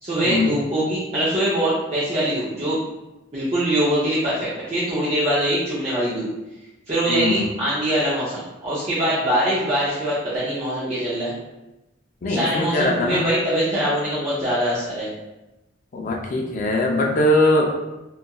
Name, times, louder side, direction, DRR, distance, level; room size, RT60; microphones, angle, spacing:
voice 1, 0.0-2.8 3.3-6.3 6.9-11.3 12.3-15.1, right 1 dB, 35° right, -10 dB, 0.5 m, -23 dB
voice 2, 7.1-7.5 12.2-13.2 15.9-17.7, left 1 dB, 40° left, 0 dB, 0.4 m, -21 dB
2.8 x 2.3 x 2.2 m, 1.0 s
head